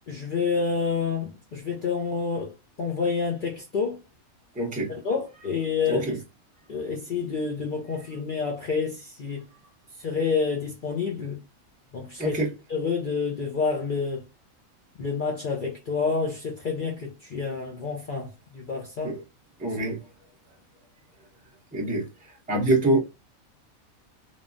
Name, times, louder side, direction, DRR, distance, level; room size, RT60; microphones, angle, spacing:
voice 1, 0.1-4.0 5.0-6.1 6.7-9.4 10.0-11.4 11.9-12.3 12.7-14.2 15.0-19.1, left 5 dB, 60° left, 0.5 m, -28 dB
voice 2, 4.5-4.9 5.9-6.2 12.2-12.5 19.0-19.2 19.6-20.0 21.7-23.0, right 2 dB, 5° right, 0.7 m, -25 dB
3.0 x 2.1 x 2.4 m
omnidirectional pair, 1.5 m